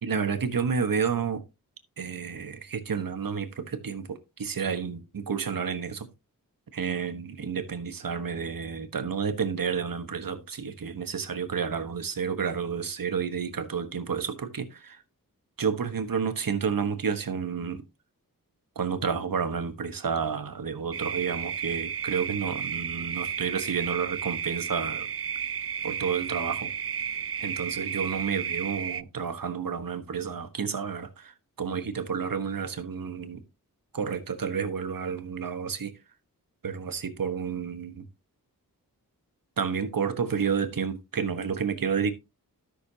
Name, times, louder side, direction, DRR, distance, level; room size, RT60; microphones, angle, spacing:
voice 1, 0.0-1.4 2.0-6.1 6.7-15.0 15.6-17.8 18.7-25.1 25.8-26.7 27.4-31.3 31.6-33.4 33.9-35.9 36.6-38.1 39.6-42.1, right 6 dB, 70° right, 1.3 m, -30 dB
sound 1, 20.9-29.0, right 8 dB, 40° right, 0.4 m, -33 dB
13.0 x 6.5 x 2.8 m
wide cardioid pair, 80°, 35 cm